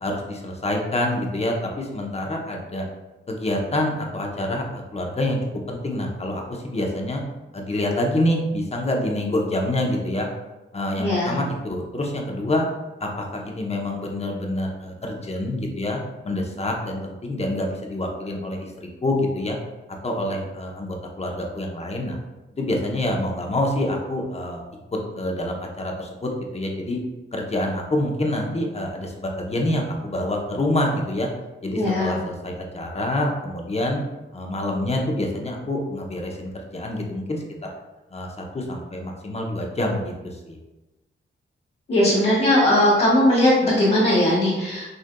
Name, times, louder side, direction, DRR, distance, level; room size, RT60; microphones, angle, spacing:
voice 1, 0.0-2.9 3.3-5.4 5.7-7.2 7.5-10.3 10.7-12.7 13.0-18.7 19.0-19.6 20.0-22.2 22.6-24.6 25.2-27.0 27.3-31.3 31.6-34.0 34.3-37.4 38.1-38.3 38.5-40.6, left 1 dB, 30° left, 1 dB, 0.8 m, -26 dB
voice 2, 11.0-11.4 31.7-32.1 41.9-44.8, left 1 dB, 50° left, -9 dB, 1.4 m, -19 dB
6.3 x 2.6 x 2.2 m, 1.1 s
cardioid pair, 80°, 21 cm